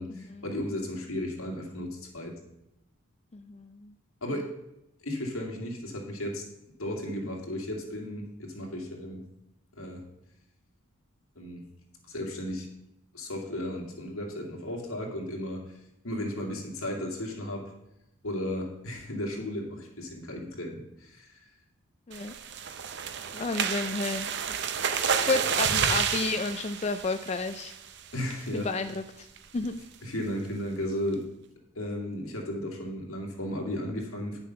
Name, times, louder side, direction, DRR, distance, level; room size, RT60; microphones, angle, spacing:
voice 1, 0.0-2.4 4.2-4.5 5.0-6.4 6.8-9.2 9.7-10.0 11.4-11.6 12.1-12.7 13.1-15.7 16.0-17.7 18.2-21.4 28.1-28.7 30.0-31.3 31.7-34.4, left 1 dB, 75° left, 1 dB, 2.3 m, -34 dB
voice 2, 3.3-3.9 22.1-22.3 23.3-24.3 25.3-27.7 28.5-29.3 29.5-29.8, left 3 dB, 30° left, 7 dB, 0.4 m, -31 dB
sound 1, 22.1-27.9 28.3-28.6 28.9-29.0 29.4-29.7, right 7 dB, 50° right, 0.6 m, -30 dB
9.6 x 6.9 x 5.7 m, 0.85 s
head